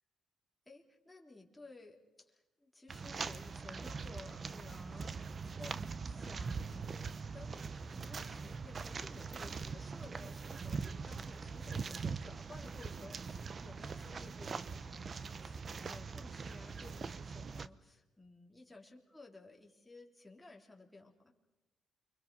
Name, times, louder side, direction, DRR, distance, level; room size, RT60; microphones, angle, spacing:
voice 1, 0.7-2.0 2.3-21.3, left 2 dB, 10° left, 0 dB, 3.6 m, -56 dB
sound 1, 2.9-17.7, right 5 dB, 40° right, 0.9 m, -42 dB
29.5 x 24.0 x 5.5 m, 1.1 s
cardioid pair, 90°, 0 cm